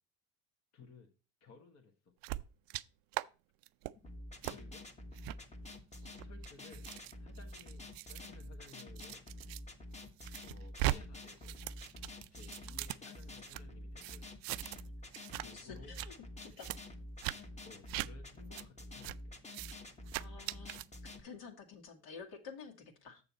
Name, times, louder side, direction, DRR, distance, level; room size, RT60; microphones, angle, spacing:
voice 1, 0.7-1.1 1.4-1.9 3.9-4.0 4.4-4.9 6.2-6.9 7.2-9.2 10.4-11.6 12.3-14.4 15.4-15.9 17.6-19.4, left 4 dB, 40° left, 2 dB, 1.4 m, -57 dB
sound 1, 2.2-2.8 3.1-3.3 3.6-3.9 4.4-4.6 5.2-5.4 6.0-9.6 10.0-11.0 11.2-13.6 14.0-14.9 15.1-15.5 15.8-16.1 16.6-16.8 17.2-17.4 17.9-18.1 18.6-18.7 19.0-19.2 19.5-19.7 20.1-20.9, right 17 dB, 60° right, 0.5 m, -40 dB
sound 2, 4.0-21.2, left 1 dB, 15° left, 1.3 m, -49 dB
voice 2, 15.5-16.1 16.4-16.8 20.2-23.2, left 5 dB, 60° left, 2 dB, 2.2 m, -51 dB
7.1 x 6.7 x 4.2 m, 0.33 s
hypercardioid pair, 85°, 40 cm